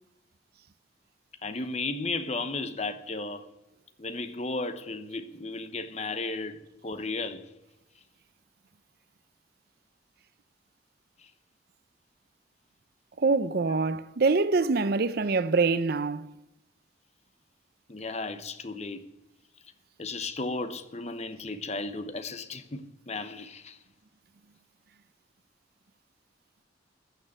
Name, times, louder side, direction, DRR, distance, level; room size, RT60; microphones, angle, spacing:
voice 1, 1.4-3.5 4.0-7.5 11.2-11.3 17.9-19.1 20.0-23.8, left 3 dB, 35° left, 0.9 m, -34 dB
voice 2, 13.2-16.3, right 4 dB, 55° right, 0.5 m, -25 dB
15.0 x 6.4 x 9.3 m
head